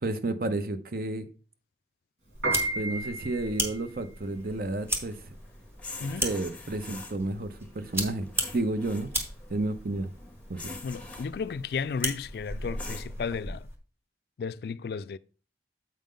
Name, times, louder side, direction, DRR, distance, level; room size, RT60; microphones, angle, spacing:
voice 1, 0.0-1.3 2.7-5.3 6.2-8.3 8.5-9.1 9.5-10.1 10.5-10.7, right 2 dB, 55° right, 0.7 m, -31 dB
sound 1, 2.3-13.8, equal, 15° right, 1.2 m, -37 dB
Piano, 2.3-12.7, right 2 dB, 85° right, 3.6 m, -36 dB
sound 2, 4.2-13.4, left 2 dB, 10° left, 0.8 m, -46 dB
voice 2, 6.0-6.3 10.8-13.7 14.4-15.2, left 5 dB, 60° left, 0.3 m, -34 dB
7.6 x 5.2 x 3.7 m
head